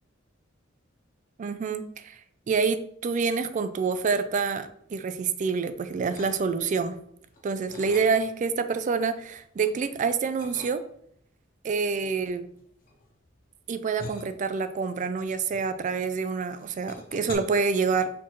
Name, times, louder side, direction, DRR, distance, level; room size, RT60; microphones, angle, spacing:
voice 1, 1.4-2.2 2.5-7.0 7.4-10.8 11.6-12.5 13.7-18.1, right 5 dB, 40° right, 11 dB, 0.3 m, -27 dB
sound 1, 6.1-6.8 7.2-8.6 9.0-9.8 10.4-11.2 12.0-16.2 16.5-17.3, left 2 dB, 45° left, 0.9 m, -45 dB
4.2 x 4.2 x 3.0 m, 0.69 s
head